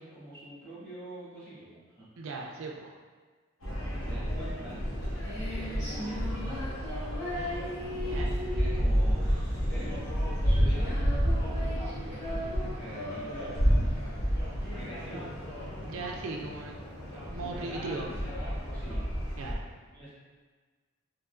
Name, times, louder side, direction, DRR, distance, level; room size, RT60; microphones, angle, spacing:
voice 1, 0.0-2.1 3.9-4.8 5.3-6.4 8.5-9.2 9.7-10.1 10.4-11.2 11.5-14.1 14.7-15.4 17.4-19.0 19.9-20.1, right 1 dB, 10° left, -12 dB, 1.3 m, -45 dB
voice 2, 2.2-2.9 7.4-7.7 8.0-8.3 15.9-16.8 17.1-18.1 19.4-19.6, right 3 dB, 75° right, 0 dB, 0.4 m, -38 dB
sound 1, 3.6-19.5, equal, 65° left, 1.0 m, -31 dB
Female singing, 4.7-15.7, left 1 dB, 35° left, 1.3 m, -39 dB
3.6 x 3.3 x 2.2 m, 1.4 s
head